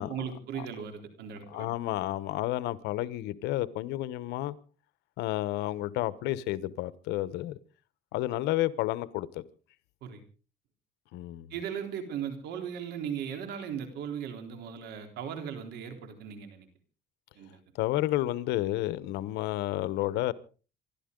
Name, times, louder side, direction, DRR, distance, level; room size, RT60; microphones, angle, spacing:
voice 1, 0.0-1.7 10.0-10.2 11.5-16.7 17.4-17.6, right 8 dB, 80° right, 3.8 m, -37 dB
voice 2, 1.5-4.6 5.2-7.6 8.1-9.4 11.1-11.5 17.8-20.3, left 15 dB, 90° left, 1.1 m, -31 dB
27.0 x 12.5 x 3.8 m
cardioid pair, 110°, 17 cm